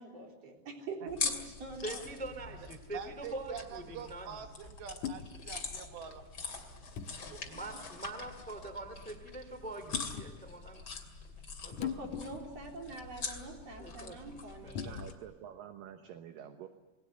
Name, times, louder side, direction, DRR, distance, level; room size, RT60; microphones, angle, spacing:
voice 1, 0.0-2.0 7.3-7.8 12.0-15.0, right 3 dB, 40° right, 1 dB, 4.5 m, -45 dB
sound 1, 1.1-15.1, left 4 dB, 30° left, 2.4 m, -43 dB
voice 2, 1.8-4.4 7.1-10.8 11.6-12.0 13.8-14.7, right 2 dB, 5° left, 8 dB, 1.5 m, -44 dB
voice 3, 2.9-6.2, right 8 dB, 85° right, 6 dB, 3.8 m, -45 dB
sound 2, 3.1-3.3 5.0-5.3 7.0-7.2 8.3-8.5 9.9-10.4 11.7-12.6 12.9-13.0 14.7-15.3, left 8 dB, 70° left, 2.0 m, -40 dB
voice 4, 14.8-16.7, right 10 dB, 70° right, 7 dB, 2.4 m, -48 dB
28.0 x 21.0 x 7.8 m, 1.2 s
omnidirectional pair, 4.8 m